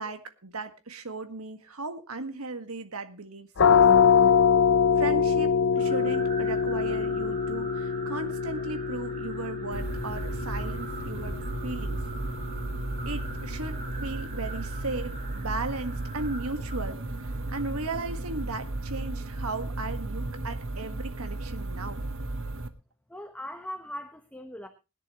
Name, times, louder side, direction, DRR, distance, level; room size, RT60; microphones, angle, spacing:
voice 1, 0.0-3.8 5.0-12.0 13.0-22.1, right 3 dB, 85° right, 7 dB, 1.7 m, -36 dB
sound 1, 3.6-15.1, left 6 dB, 60° left, 0.7 m, -25 dB
sound 2, 5.7-19.1, right 3 dB, 40° right, 2.8 m, -45 dB
sound 3, 9.7-22.7, right 2 dB, 65° right, 1.3 m, -34 dB
voice 2, 23.1-24.7, left 1 dB, 5° left, 7 dB, 1.0 m, -39 dB
20.5 x 10.5 x 3.1 m, 0.28 s
head